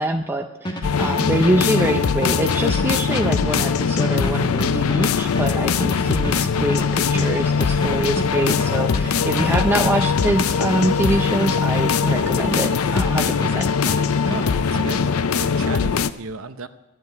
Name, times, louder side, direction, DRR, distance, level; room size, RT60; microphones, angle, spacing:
voice 1, 0.0-13.7, right 1 dB, 10° right, 4 dB, 0.5 m, -24 dB
sound 1, 0.6-13.6 13.9-15.0, equal, 20° left, 1.3 m, -30 dB
sound 2, 0.8-16.1, left 6 dB, 75° left, 0.5 m, -21 dB
sound 3, 8.0-15.0, left 3 dB, 55° left, 1.9 m, -47 dB
voice 2, 14.1-16.7, right 3 dB, 65° right, 10 dB, 0.8 m, -34 dB
12.5 x 7.7 x 9.3 m, 1.0 s
head